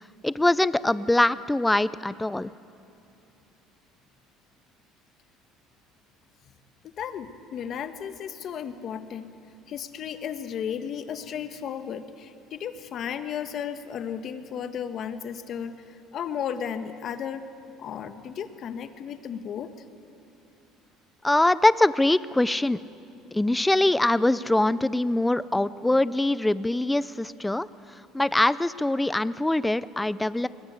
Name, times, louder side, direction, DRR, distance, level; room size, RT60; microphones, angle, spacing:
voice 1, 0.2-2.5 21.2-22.8 23.3-27.7 28.1-30.5, left 1 dB, 10° left, 17 dB, 0.5 m, -23 dB
voice 2, 7.0-9.3 9.7-17.4 17.8-19.7, left 8 dB, 50° left, 9 dB, 1.4 m, -34 dB
21.5 x 20.5 x 8.2 m, 2.7 s
cardioid pair, 120°, 0 cm